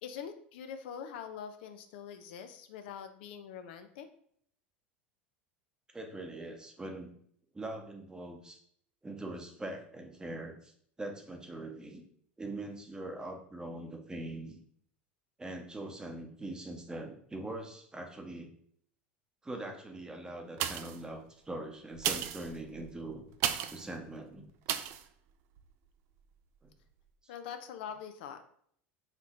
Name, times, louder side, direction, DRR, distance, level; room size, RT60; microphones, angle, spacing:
voice 1, 0.0-4.1 27.3-28.4, left 7 dB, 60° left, 8 dB, 0.3 m, -44 dB
voice 2, 5.9-7.1 7.5-8.6 9.0-10.7 11.0-12.0 12.4-14.6 15.4-18.5 19.4-23.2 23.7-24.4 27.2-27.3, right 2 dB, 10° right, 3 dB, 0.7 m, -42 dB
sound 1, 20.5-21.1 21.9-23.9 24.7-25.0 25.6-25.7, right 10 dB, 50° right, 0.3 m, -34 dB
4.3 x 2.9 x 2.5 m, 0.64 s
figure-of-eight pair, 75°, 6 cm